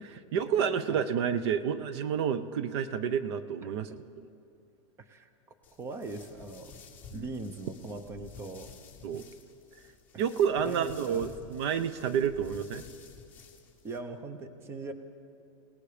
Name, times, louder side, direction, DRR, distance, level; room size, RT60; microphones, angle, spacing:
voice 1, 0.3-4.3 7.1-7.3 9.0-9.2 10.2-12.8, right 8 dB, 55° right, 13 dB, 0.8 m, -30 dB
voice 2, 5.0-5.3 5.8-6.7 7.1-8.7 9.1-9.2 10.1-10.2 10.6-11.3 13.8-14.9, right 3 dB, 15° right, 9 dB, 0.8 m, -40 dB
sound 1, 5.6-14.0, left 6 dB, 10° left, 1.9 m, -52 dB
28.5 x 18.0 x 5.1 m, 2.6 s
supercardioid pair, 170°, 17 cm